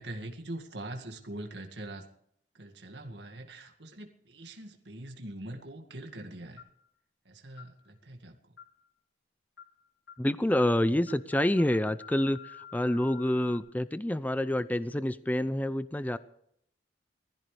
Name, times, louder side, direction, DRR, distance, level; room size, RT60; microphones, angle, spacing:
voice 1, 0.0-2.1 2.5-6.6 7.3-8.4, right 1 dB, 70° right, 4 dB, 2.1 m, -43 dB
sound 1, 6.6-6.8 7.6-7.8 8.6-8.8 9.6-9.8 10.1-10.3 10.6-10.8 11.1-13.6, left 8 dB, 80° left, 2.3 m, -49 dB
voice 2, 10.2-16.2, left 1 dB, 10° left, 14 dB, 0.5 m, -28 dB
21.0 x 15.0 x 3.4 m, 0.69 s
head